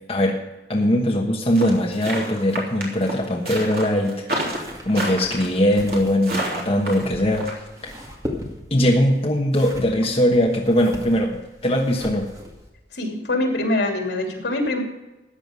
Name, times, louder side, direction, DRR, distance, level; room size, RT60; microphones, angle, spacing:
voice 1, 0.7-7.5 7.8-7.9 8.7-11.4 11.6-12.3, equal, 35° left, -1 dB, 1.2 m, -21 dB
sound 1, 1.6-7.5, right 1 dB, 55° right, 3.4 m, -28 dB
Snöra upp skor, 4.5-12.7, left 1 dB, 20° right, 2.0 m, -39 dB
voice 2, 12.9-14.8, left 1 dB, 75° left, 1 dB, 3.1 m, -24 dB
14.0 x 9.3 x 5.3 m, 1.0 s
head